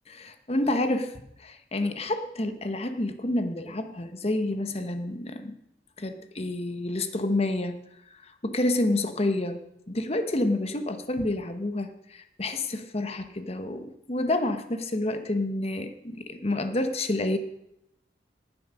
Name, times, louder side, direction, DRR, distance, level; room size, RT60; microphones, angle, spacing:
voice 1, 0.2-1.1 1.4-5.6 6.0-7.8 8.4-9.6 9.9-17.4, left 2 dB, 35° left, 8 dB, 1.1 m, -28 dB
18.0 x 7.6 x 6.1 m, 0.81 s
head